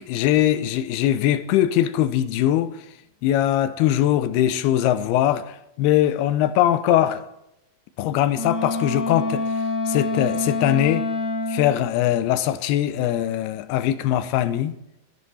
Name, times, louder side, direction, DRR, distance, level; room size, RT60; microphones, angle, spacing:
voice 1, 0.0-2.8 3.2-7.3 8.0-9.4 9.9-11.1 11.5-14.7, left 12 dB, 85° left, 2.6 m, -21 dB
Wind instrument woodwind instrument, 8.3-11.8, left 2 dB, 5° left, 4.1 m, -26 dB
14.0 x 11.0 x 4.2 m
omnidirectional pair, 4.4 m